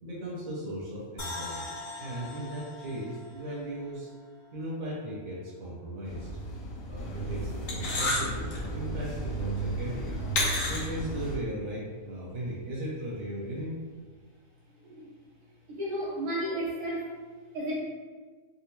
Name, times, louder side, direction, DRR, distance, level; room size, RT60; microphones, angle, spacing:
voice 1, 0.0-4.1 4.5-6.3 6.9-10.2 10.7-13.8, right 1 dB, 65° right, -6 dB, 1.4 m, -37 dB
sound 1, 1.2-4.4 4.7-4.8, left 3 dB, 25° left, 1.2 m, -42 dB
sound 2, 6.1-11.4, equal, 65° left, 1.1 m, -32 dB
voice 2, 15.7-17.1 17.5-17.8, right 1 dB, 85° right, -7 dB, 1.4 m, -33 dB
4.1 x 2.2 x 2.9 m, 1.4 s
omnidirectional pair, 1.6 m